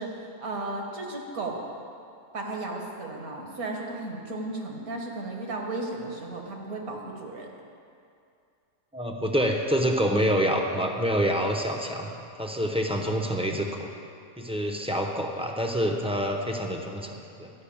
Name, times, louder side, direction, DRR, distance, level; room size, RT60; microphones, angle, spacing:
voice 1, 0.0-1.6 2.3-7.5, right 2 dB, 70° right, 0 dB, 1.9 m, -34 dB
voice 2, 8.9-13.9 14.4-17.5, equal, 5° right, 2 dB, 0.5 m, -27 dB
12.0 x 5.8 x 8.6 m, 2.4 s
omnidirectional pair, 1.5 m